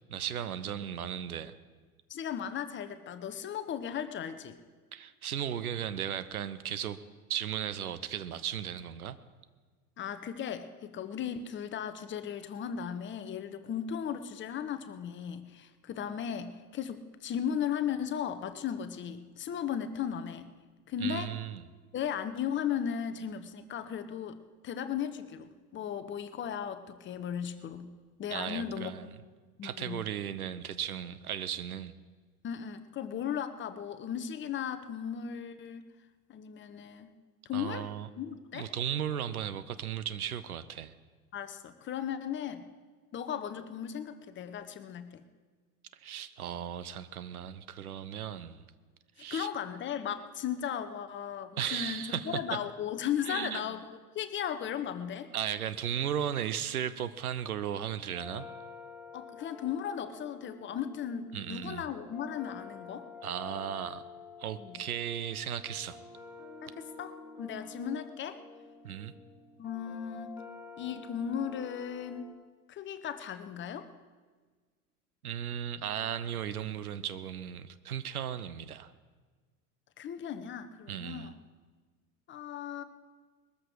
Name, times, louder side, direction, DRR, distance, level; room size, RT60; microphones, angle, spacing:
voice 1, 0.1-1.5 4.9-7.0 7.3-9.2 21.0-21.6 28.3-29.1 29.6-31.9 37.5-38.1 38.5-40.9 46.0-48.6 49.2-49.5 51.6-52.4 53.2-53.6 55.3-58.5 61.3-61.8 63.2-64.0 64.4-66.0 68.8-69.1 75.2-78.9 80.9-81.3, right 9 dB, 70° right, 14 dB, 0.9 m, -36 dB
voice 2, 2.1-4.6 10.0-20.5 20.9-21.4 21.9-24.4 24.6-27.9 28.2-28.9 29.6-30.0 32.4-35.9 36.3-37.1 37.4-37.8 38.2-38.7 41.3-42.6 43.1-45.3 49.3-55.3 59.1-63.1 64.6-64.8 66.6-68.4 69.6-70.4 70.8-72.3 72.7-73.9 80.0-81.3 82.3-82.8, left 8 dB, 25° left, 10 dB, 1.0 m, -36 dB
sound 1, 58.1-72.3, left 4 dB, 5° right, 5.3 m, -49 dB
21.0 x 13.5 x 4.8 m, 1.4 s
figure-of-eight pair, 80°, 45 cm